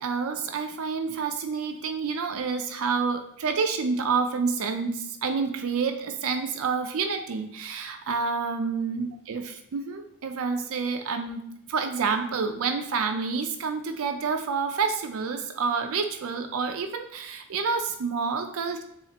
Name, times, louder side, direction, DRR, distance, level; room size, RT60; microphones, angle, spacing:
voice 1, 0.0-18.8, right 5 dB, 70° right, 5 dB, 0.4 m, -28 dB
7.1 x 2.4 x 2.9 m, 0.73 s
head